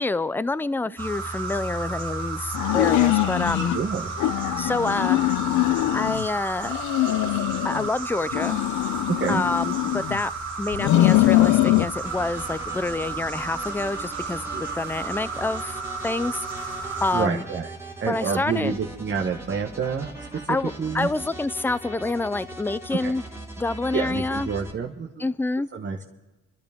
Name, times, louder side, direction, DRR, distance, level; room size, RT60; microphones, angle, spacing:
voice 1, 0.0-3.8 4.6-5.2 5.9-6.7 7.2-7.3 7.6-8.6 9.3-10.3 10.6-17.4 18.1-18.7 20.5-23.2 23.6-24.5 25.2-25.7, left 3 dB, 5° left, 17 dB, 0.4 m, -27 dB
sound 1, 1.0-17.2, right 4 dB, 85° right, 2.6 m, -33 dB
sound 2, 2.5-3.8 4.2-6.3 6.6-7.9 8.3-10.2 10.7-11.9, left 16 dB, 75° left, 0.5 m, -22 dB
voice 2, 3.7-4.1 9.2-9.4 14.5-14.6 16.9-17.7 18.0-21.1 23.0-23.1 23.9-25.2 25.7-26.0, right 6 dB, 40° right, 1 dB, 1.2 m, -28 dB
sound 3, 12.0-24.7, right 1 dB, 10° right, 1.6 m, -40 dB
29.5 x 12.0 x 3.5 m, 1.1 s
cardioid pair, 90°, 30 cm